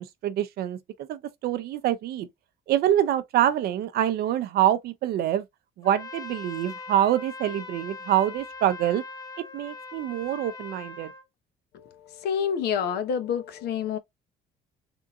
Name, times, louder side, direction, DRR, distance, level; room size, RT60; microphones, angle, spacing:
voice 1, 0.0-2.3 2.7-5.4 5.8-9.0 9.5-11.1, right 11 dB, 70° right, 0.5 m, -25 dB
Trumpet, 5.8-11.2, left 4 dB, 20° left, 0.6 m, -41 dB
voice 2, 11.7-14.0, left 7 dB, 75° left, 0.8 m, -28 dB
3.7 x 2.6 x 2.3 m
cardioid pair, 110°, 17 cm